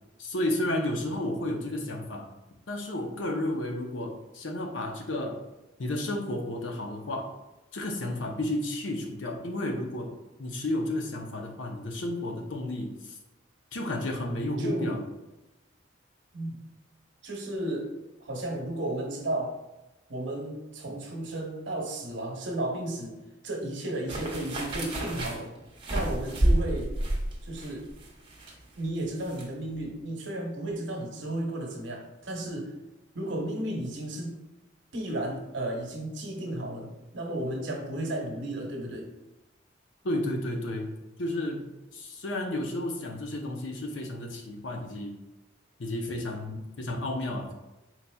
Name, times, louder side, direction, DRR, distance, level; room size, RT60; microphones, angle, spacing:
voice 1, 0.2-2.3 2.7-5.4 5.8-7.3 7.7-10.1 10.4-13.2 13.7-15.0 40.0-40.9 41.2-41.6 41.9-45.1 45.8-47.5, left 1 dB, 80° left, 2 dB, 0.7 m, -32 dB
voice 2, 14.6-15.0 16.3-16.6 17.2-17.9 18.2-19.5 20.1-23.2 23.4-25.5 25.9-26.9 27.4-27.9 28.8-32.7 33.1-34.4 34.9-39.1, right 1 dB, 70° right, 0 dB, 1.0 m, -33 dB
sound 1, 24.1-29.5 29.7-29.9, right 1 dB, 25° right, 0.8 m, -30 dB
4.5 x 4.1 x 2.3 m, 1.0 s
head